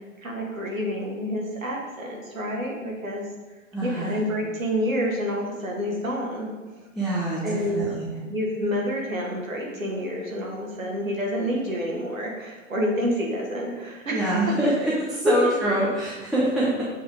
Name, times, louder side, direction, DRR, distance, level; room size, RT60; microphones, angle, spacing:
voice 1, 0.2-3.3 3.8-6.5 7.4-7.8 8.2-14.7 15.2-15.6, equal, 80° right, -1 dB, 1.8 m, -28 dB
voice 2, 3.7-4.1 6.9-8.2 14.1-16.8, right 1 dB, ahead, -8 dB, 0.4 m, -25 dB
7.1 x 3.3 x 5.0 m, 1.2 s
figure-of-eight pair, 105°, 40 cm